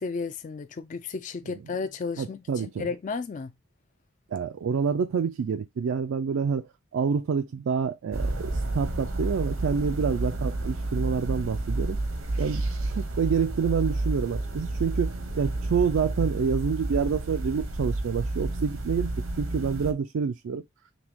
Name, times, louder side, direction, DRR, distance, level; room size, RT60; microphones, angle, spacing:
voice 1, 0.0-3.5, left 4 dB, 40° left, 0.3 m, -33 dB
voice 2, 2.2-2.9 4.3-12.0 12.4-20.6, right 6 dB, 75° right, 0.4 m, -28 dB
sound 1, 8.1-19.9, right 2 dB, 90° right, 1.0 m, -30 dB
6.0 x 2.2 x 3.5 m
head